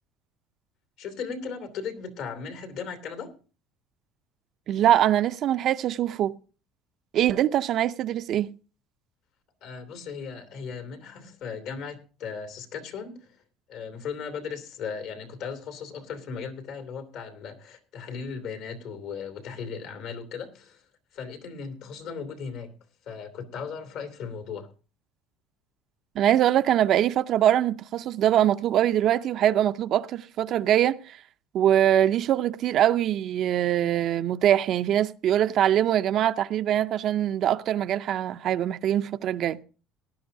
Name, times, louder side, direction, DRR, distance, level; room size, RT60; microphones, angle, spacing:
voice 1, 1.0-3.3 9.6-13.4 13.7-20.9 21.1-22.7 23.0-24.7, left 6 dB, 70° left, 2.7 m, -37 dB
voice 2, 4.7-6.3 7.1-8.5 26.2-31.2 31.5-39.6, right 11 dB, 55° right, 0.5 m, -23 dB
18.0 x 11.0 x 2.7 m
cardioid pair, 115°, 0 cm